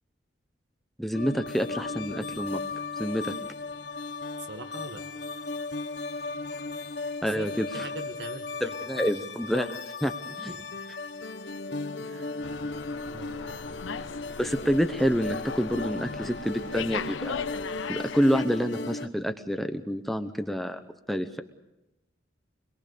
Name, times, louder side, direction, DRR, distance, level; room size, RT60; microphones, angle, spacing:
voice 1, 1.0-2.6 3.0-3.3 7.2-7.7 8.6-9.7 10.0-10.1 10.4-10.5 14.4-17.4 17.9-20.8 21.1-21.4, equal, ahead, 7 dB, 0.9 m, -27 dB
sound 1, 1.1-19.1, left 3 dB, 60° left, 1.1 m, -36 dB
voice 2, 4.4-5.1 7.2-7.5 7.7-8.8 9.0-9.2 10.5-10.6 12.0-12.7 13.1-13.8, right 2 dB, 65° right, 7 dB, 1.7 m, -43 dB
Slam, 12.4-18.5, left 5 dB, 90° left, 0.7 m, -38 dB
25.0 x 22.0 x 6.8 m, 0.94 s
head